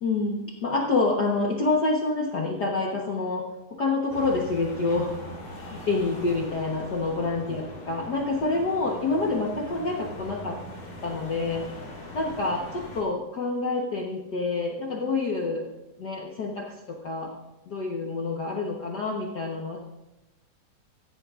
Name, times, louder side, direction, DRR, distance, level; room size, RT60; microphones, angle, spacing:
voice 1, 0.0-3.5 3.8-5.2 5.6-10.6 11.0-11.6 12.1-15.7 16.0-17.4 17.6-19.8, left 3 dB, 70° left, -1 dB, 0.9 m, -27 dB
sound 1, 4.1-13.0, left 1 dB, 55° left, 4.8 m, -41 dB
15.5 x 14.5 x 2.5 m, 0.99 s
omnidirectional pair, 3.7 m